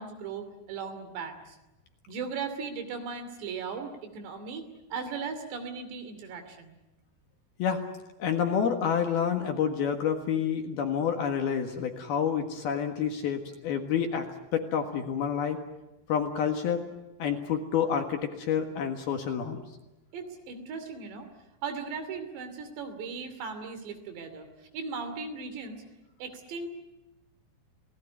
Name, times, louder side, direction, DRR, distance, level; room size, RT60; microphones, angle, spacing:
voice 1, 0.0-1.6 2.1-6.7 20.1-21.3 21.6-24.5 24.7-25.8 26.2-26.7, right 5 dB, 60° right, 8 dB, 4.6 m, -37 dB
voice 2, 8.2-14.3 14.5-15.6 16.1-16.9 17.2-19.6, left 7 dB, 60° left, 4 dB, 3.0 m, -28 dB
30.0 x 18.5 x 9.5 m, 1.0 s
omnidirectional pair, 5.8 m